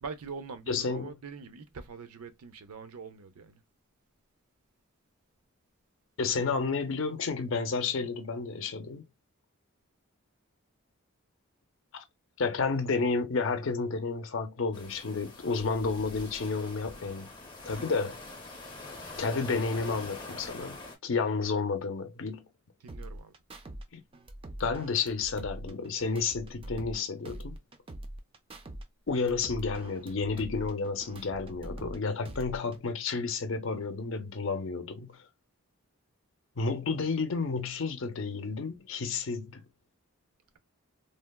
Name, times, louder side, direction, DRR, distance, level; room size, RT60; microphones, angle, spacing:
voice 1, 0.0-3.6 22.8-23.3, right 5 dB, 85° right, 0.6 m, -43 dB
voice 2, 0.7-1.1 6.2-9.0 11.9-12.0 12.4-17.3 17.6-18.2 19.2-20.8 21.0-22.5 23.9-24.0 24.6-27.6 29.1-35.2 36.6-39.6, left 4 dB, 60° left, 0.6 m, -31 dB
sound 1, 14.7-21.0, left 2 dB, 20° left, 0.7 m, -44 dB
sound 2, 22.9-23.8 24.1-27.0 27.2-28.8 29.1-32.0 32.2-32.9, right 1 dB, 25° right, 0.3 m, -43 dB
3.3 x 2.1 x 2.2 m
head